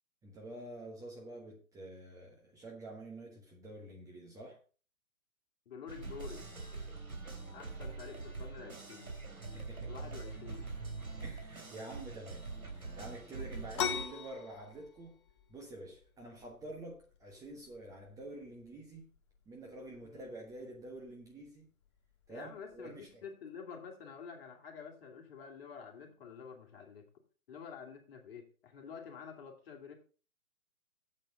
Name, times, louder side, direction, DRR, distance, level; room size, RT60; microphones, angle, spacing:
voice 1, 0.2-4.6 9.5-9.9 11.2-15.2 15.5-19.1 19.5-21.7 22.3-23.1, right 2 dB, 10° right, 1.2 m, -48 dB
voice 2, 5.7-6.5 7.5-9.1 9.8-10.7 20.0-20.3 22.3-27.1 27.5-29.9, left 6 dB, 40° left, 2.8 m, -49 dB
sound 1, 5.9-14.1, right 3 dB, 75° right, 3.4 m, -44 dB
sound 2, 13.7-23.1, left 8 dB, 20° left, 0.6 m, -45 dB
8.9 x 7.9 x 5.4 m
figure-of-eight pair, 130°, 43 cm